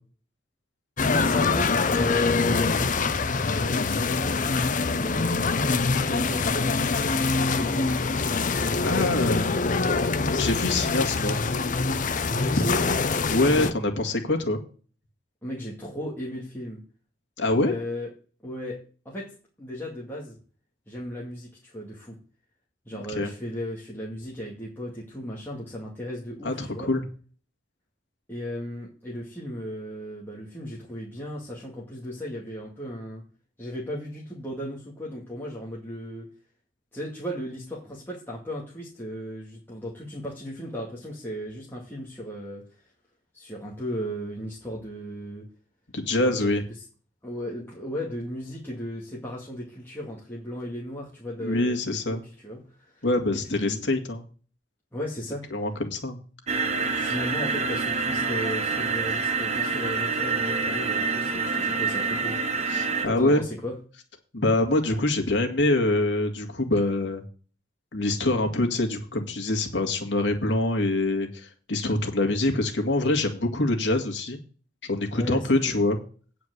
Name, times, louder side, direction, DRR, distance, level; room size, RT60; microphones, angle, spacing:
sound 1, 1.0-13.7, left 4 dB, 45° left, 0.7 m, -24 dB
voice 1, 1.0-4.3 4.8-8.2 9.0-9.7 12.3-12.9 15.4-16.8 17.6-18.1 18.4-18.8 19.1-20.4 20.9-22.2 22.9-26.9 28.3-33.2 33.6-36.3 36.9-42.6 43.3-45.5 46.1-46.5 47.2-52.2 52.4-53.1 53.6-53.8 54.9-55.5 56.9-62.4 63.0-63.7 75.1-75.8, left 1 dB, 10° left, -4 dB, 2.3 m, -35 dB
voice 2, 8.8-9.4 10.1-11.4 12.6-12.7 13.3-14.6 17.4-17.7 22.9-23.3 26.4-27.0 45.9-46.6 51.4-52.2 53.0-54.2 55.5-56.2 62.7-63.4 64.3-67.2 67.9-74.4 74.8-76.0, left 2 dB, 80° left, 3 dB, 2.2 m, -25 dB
sound 2, 56.5-63.1, right 4 dB, 40° right, 1.3 m, -27 dB
9.4 x 5.1 x 8.0 m, 0.40 s
head